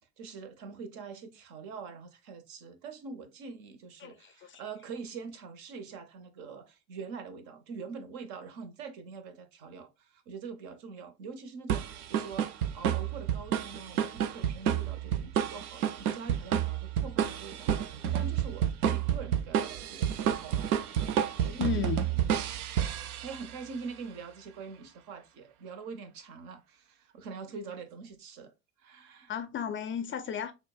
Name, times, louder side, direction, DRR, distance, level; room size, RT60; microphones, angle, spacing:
voice 1, 0.0-20.7 21.4-21.9 23.2-28.5 28.8-29.3, right 5 dB, 60° right, 0.9 m, -44 dB
voice 2, 4.0-4.6 21.6-22.0 29.3-30.5, left 8 dB, 30° left, 0.4 m, -34 dB
sound 1, 11.7-23.6, right 9 dB, 80° right, 0.5 m, -30 dB
6.2 x 2.1 x 2.3 m
hypercardioid pair, 65°, 43 cm